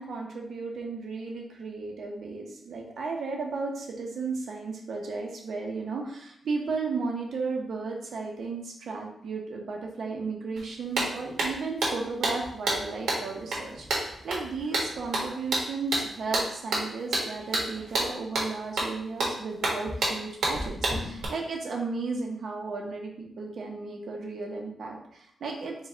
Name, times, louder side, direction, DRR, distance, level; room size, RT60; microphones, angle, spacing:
voice 1, 0.0-25.8, right 4 dB, 65° right, 0 dB, 0.9 m, -34 dB
sound 1, 10.6-10.7 10.9-21.2, right 2 dB, 90° right, 1.5 m, -29 dB
4.7 x 2.4 x 4.3 m, 0.71 s
wide cardioid pair, 165°, 0 cm